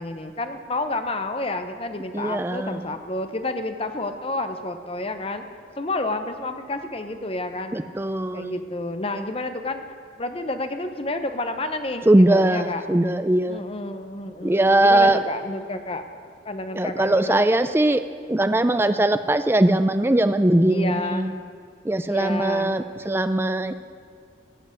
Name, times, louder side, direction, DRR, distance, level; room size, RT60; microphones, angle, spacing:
voice 1, 0.0-5.4 5.8-7.8 8.3-9.8 10.2-12.8 13.5-16.0 16.4-17.4 20.7-21.3 22.1-22.8, left 2 dB, 30° left, 8 dB, 0.8 m, -30 dB
voice 2, 2.1-2.8 7.7-8.6 12.1-13.6 14.4-15.2 16.7-18.0 18.3-21.3 21.8-23.8, right 1 dB, 10° right, 11 dB, 0.4 m, -20 dB
14.5 x 7.9 x 7.9 m, 2.2 s
head